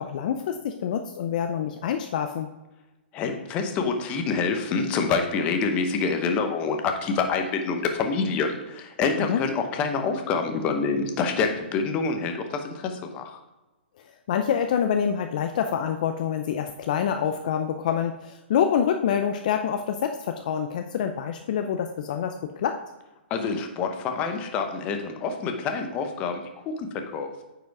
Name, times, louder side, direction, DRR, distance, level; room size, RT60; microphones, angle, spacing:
voice 1, 0.0-2.5 9.2-9.4 14.3-22.8, left 8 dB, 40° left, 6 dB, 0.5 m, -26 dB
voice 2, 3.1-13.4 23.3-26.4 26.8-27.3, left 4 dB, 20° left, 5 dB, 0.9 m, -27 dB
9.1 x 5.0 x 4.7 m, 1.1 s
hypercardioid pair, 165°, 6 cm